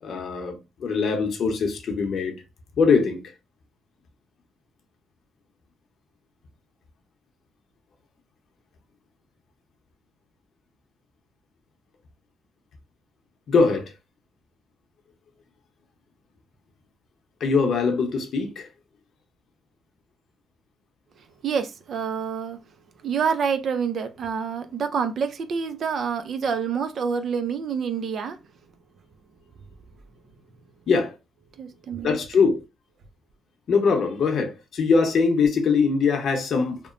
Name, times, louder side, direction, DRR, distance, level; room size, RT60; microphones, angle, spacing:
voice 1, 0.0-2.4 2.8-3.2 13.5-13.9 17.4-18.7 30.9-31.2 32.0-32.6 33.7-36.8, left 5 dB, 60° left, 0.7 m, -22 dB
voice 2, 21.4-22.6 23.0-28.4 31.6-32.2, right 6 dB, 60° right, 0.4 m, -27 dB
2.9 x 2.1 x 2.4 m
cardioid pair, 90°, 0 cm